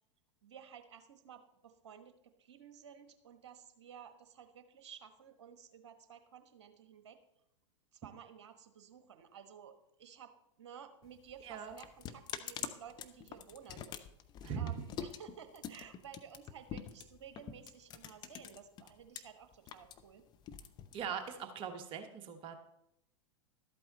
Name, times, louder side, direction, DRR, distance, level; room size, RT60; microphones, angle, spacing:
voice 1, 0.4-7.2 7.9-13.9 14.5-20.2, right 8 dB, 60° right, 9 dB, 1.2 m, -54 dB
sound 1, 11.0-19.2 19.5-21.4, left 8 dB, 25° left, 0.7 m, -46 dB
voice 2, 11.4-11.8 14.4-14.7 20.9-22.6, right 7 dB, 35° right, 7 dB, 1.2 m, -40 dB
12.5 x 8.4 x 4.0 m, 0.81 s
figure-of-eight pair, 95°, 16 cm